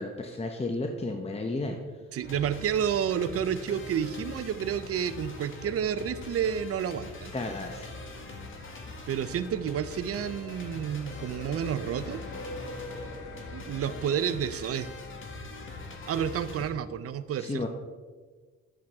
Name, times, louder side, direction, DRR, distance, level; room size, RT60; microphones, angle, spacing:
voice 1, 0.0-1.8 7.3-7.9 17.4-17.7, left 2 dB, 20° left, 4 dB, 0.8 m, -33 dB
voice 2, 2.1-7.3 9.1-12.2 13.5-14.9 16.1-17.7, right 8 dB, 50° right, 13 dB, 0.6 m, -30 dB
sound 1, 2.2-16.7, left 2 dB, 40° left, 1.6 m, -42 dB
sound 2, 7.3-14.3, left 2 dB, 85° left, 1.6 m, -45 dB
10.5 x 7.5 x 3.6 m, 1.4 s
cardioid pair, 90°, 30 cm